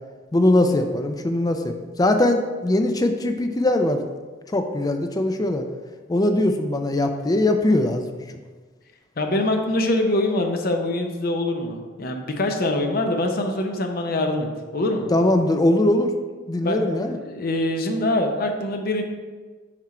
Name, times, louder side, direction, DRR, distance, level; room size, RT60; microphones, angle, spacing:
voice 1, 0.3-4.0 4.5-5.6 6.1-8.1 15.1-16.1 16.5-17.2, left 1 dB, 20° left, 6 dB, 0.4 m, -21 dB
voice 2, 9.2-15.1 16.6-19.0, left 1 dB, 50° left, 4 dB, 0.7 m, -24 dB
6.0 x 4.4 x 4.3 m, 1.4 s
head